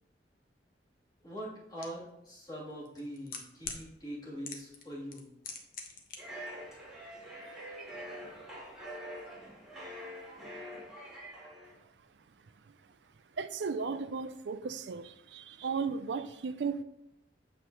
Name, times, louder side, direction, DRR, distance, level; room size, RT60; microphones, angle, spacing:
voice 1, 1.2-5.3, equal, 25° left, 3.0 m, -43 dB
sound 1, 1.8-1.9 2.8-3.8 4.4-4.8 5.1-6.2 6.4-6.5, left 5 dB, 55° left, 1.0 m, -41 dB
sound 2, 6.2-11.8, equal, 5° right, 2.6 m, -45 dB
voice 2, 13.3-16.8, right 5 dB, 75° right, 0.4 m, -35 dB
8.1 x 6.9 x 3.0 m
head